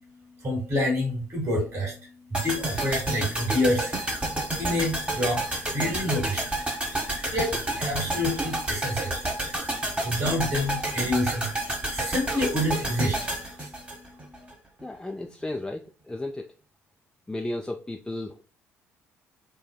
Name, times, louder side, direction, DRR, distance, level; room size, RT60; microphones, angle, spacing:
voice 1, 0.4-2.0 2.3-4.0 4.6-6.6 7.3-9.2 10.0-13.3 13.6-13.7, left 1 dB, 45° right, 0 dB, 1.5 m, -28 dB
sound 1, 2.3-14.5 14.8-14.9, right 1 dB, 15° right, 0.9 m, -30 dB
voice 2, 14.8-16.5 17.3-18.4, left 2 dB, 10° left, 2 dB, 0.3 m, -34 dB
3.2 x 2.1 x 2.2 m, 0.34 s
figure-of-eight pair, 50°, 7 cm